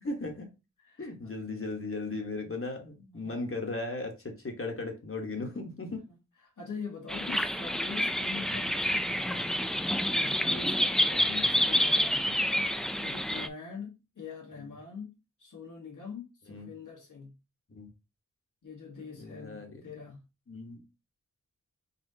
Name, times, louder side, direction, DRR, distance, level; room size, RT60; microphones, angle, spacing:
voice 1, 0.0-0.5 1.0-6.0 7.3-7.4 8.5-8.7 11.2-11.4 12.3-12.4 16.5-16.7 17.7-17.9 19.2-19.8 20.5-20.8, left 2 dB, 45° left, 1.2 m, -37 dB
voice 2, 3.0-3.5 6.1-9.6 10.1-12.3 13.0-15.1 15.4-17.3 18.6-20.2, left 5 dB, 80° left, 1.5 m, -44 dB
sound 1, 7.1-13.5, equal, ahead, 0.4 m, -28 dB
4.2 x 4.1 x 2.7 m
wide cardioid pair, 85°, 31 cm